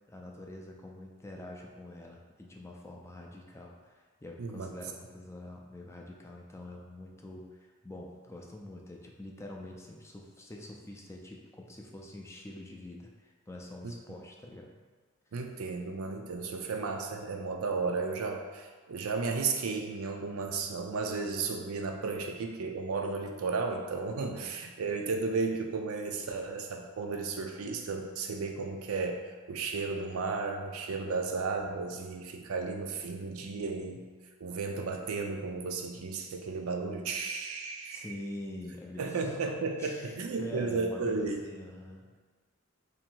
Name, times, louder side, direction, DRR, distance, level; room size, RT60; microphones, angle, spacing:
voice 1, 0.1-14.7 16.7-16.8 24.3-24.5 37.9-39.4 39.8-42.2, left 1 dB, 15° left, 0 dB, 0.4 m, -45 dB
voice 2, 4.4-4.7 13.8-13.9 15.3-34.0 34.4-38.1 39.0-41.4, right 4 dB, 75° right, 3 dB, 0.5 m, -34 dB
3.1 x 2.8 x 4.4 m, 1.5 s
head